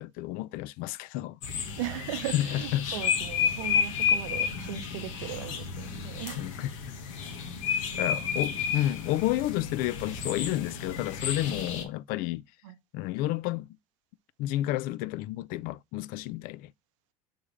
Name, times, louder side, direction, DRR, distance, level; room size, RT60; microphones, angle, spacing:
voice 1, 0.0-1.4 2.3-2.9 6.4-6.7 8.0-12.4 12.9-13.7 14.4-16.7, left 15 dB, 60° left, 0.4 m, -31 dB
sound 1, 1.4-11.8, left 6 dB, 80° left, 1.2 m, -31 dB
voice 2, 1.8-6.4 7.9-8.0 12.6-12.7, right 14 dB, 80° right, 0.7 m, -38 dB
5.6 x 3.4 x 4.9 m
hypercardioid pair, 85°, 16 cm